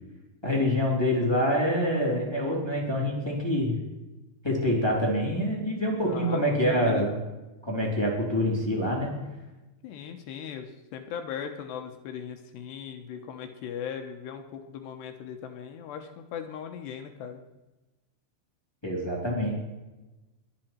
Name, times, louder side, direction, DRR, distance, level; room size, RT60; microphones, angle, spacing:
voice 1, 0.4-3.7 4.4-7.1 7.6-9.1 18.8-19.5, equal, 5° left, -3 dB, 2.3 m, -26 dB
voice 2, 6.0-6.4 6.7-7.1 9.8-17.4, left 7 dB, 75° left, 6 dB, 2.7 m, -38 dB
22.0 x 9.0 x 4.5 m, 1.1 s
omnidirectional pair, 5.7 m